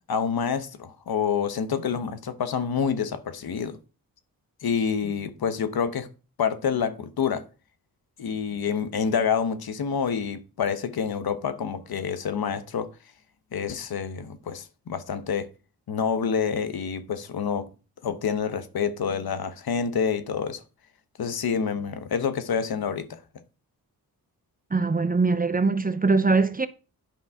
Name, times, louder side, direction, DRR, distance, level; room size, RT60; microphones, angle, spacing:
voice 1, 0.1-3.8 4.6-6.1 6.4-7.4 8.2-12.9 13.5-15.5 15.9-17.7 18.0-20.6 21.2-23.2, left 6 dB, 75° left, 1.1 m, -27 dB
voice 2, 24.7-26.7, right 4 dB, 25° right, 0.6 m, -22 dB
10.5 x 5.5 x 3.6 m
cardioid pair, 60°, 37 cm